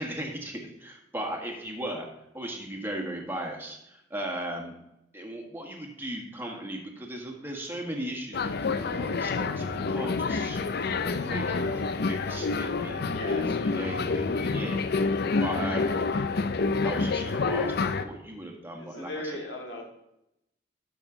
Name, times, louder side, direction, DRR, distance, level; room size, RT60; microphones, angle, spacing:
voice 1, 0.0-2.1 2.3-4.7 5.1-10.6 11.2-16.0 16.8-19.4, right 1 dB, 15° right, 1 dB, 1.6 m, -37 dB
sound 1, 8.3-18.0, left 4 dB, 60° left, 0.5 m, -28 dB
voice 2, 13.1-13.5 18.8-19.8, left 1 dB, 85° left, 0 dB, 2.3 m, -37 dB
12.0 x 6.3 x 3.9 m, 0.84 s
head